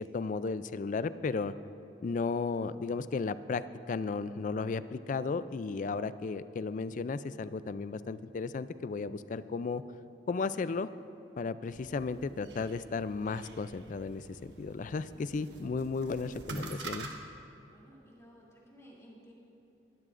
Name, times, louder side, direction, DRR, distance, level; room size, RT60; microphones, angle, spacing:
voice 1, 0.0-1.5 2.0-3.6 3.9-9.8 10.3-10.9 11.4-17.1, left 4 dB, 45° left, 14 dB, 0.3 m, -34 dB
sound 1, 11.7-17.1, right 2 dB, 90° right, 1.2 m, -46 dB
voice 2, 14.8-15.5 17.7-19.3, equal, 15° left, -5 dB, 2.9 m, -57 dB
20.5 x 12.5 x 2.5 m, 3.0 s
head